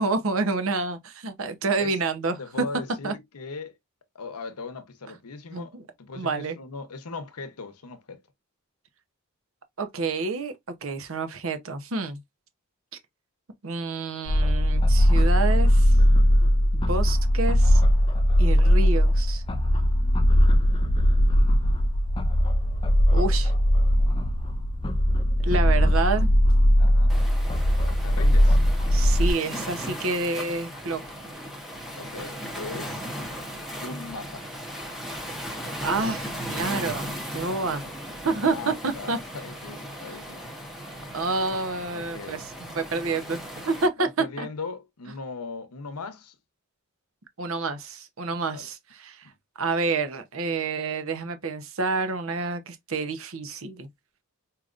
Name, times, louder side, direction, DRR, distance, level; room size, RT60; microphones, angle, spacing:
voice 1, 0.0-2.4 3.0-3.1 5.5-5.8 6.2-6.6 9.8-10.5 10.8-12.2 13.6-16.0 16.7-17.8 18.4-19.4 23.1-23.5 25.4-26.3 28.9-31.0 35.8-37.8 38.2-39.2 41.1-44.1 44.4-44.5 47.4-49.2 49.6-53.9, right 3 dB, 60° right, 0.8 m, -28 dB
voice 2, 2.4-3.7 4.1-8.2 20.3-20.9 25.4-25.9 26.8-27.2 27.7-28.6 32.0-33.0 33.8-34.5 37.5-37.6 38.5-40.5 41.9-42.5 44.0-46.3 48.5-48.7 49.2-49.3, left 4 dB, 85° left, 0.8 m, -39 dB
sound 1, 14.3-29.3, equal, 20° left, 0.4 m, -20 dB
Waves surf, 27.1-43.9, equal, ahead, 0.8 m, -37 dB
4.9 x 2.8 x 2.4 m
head